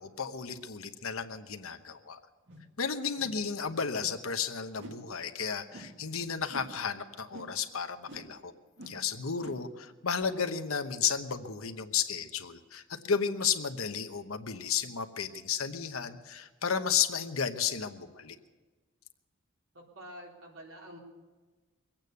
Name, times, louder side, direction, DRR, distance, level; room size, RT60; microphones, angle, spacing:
voice 1, 0.0-2.2 2.8-8.5 8.9-18.4, left 7 dB, 90° left, 8 dB, 1.0 m, -33 dB
sound 1, 2.5-2.7 3.2-3.4 3.9-4.2 4.8-5.1 5.7-6.0 6.5-6.7 7.3-7.6 8.0-8.3 8.8-9.0 9.4-9.7 10.2-10.3, right 2 dB, 60° right, 2.0 m, -47 dB
voice 2, 19.7-21.0, equal, 80° right, -1 dB, 3.7 m, -48 dB
22.5 x 8.9 x 6.7 m, 1.3 s
head